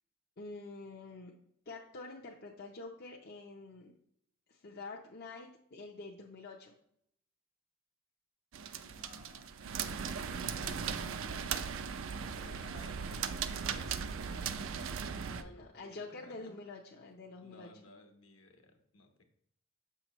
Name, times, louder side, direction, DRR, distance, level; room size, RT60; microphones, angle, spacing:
voice 1, 0.4-1.3 1.7-3.9 4.5-6.8 15.3-17.7, left 3 dB, 50° left, -2 dB, 0.7 m, -47 dB
sound 1, 8.5-15.4, right 6 dB, 70° right, 0.4 m, -38 dB
voice 2, 8.7-16.6 17.4-19.2, left 2 dB, 70° left, 4 dB, 1.2 m, -57 dB
7.3 x 5.8 x 3.0 m, 0.71 s
head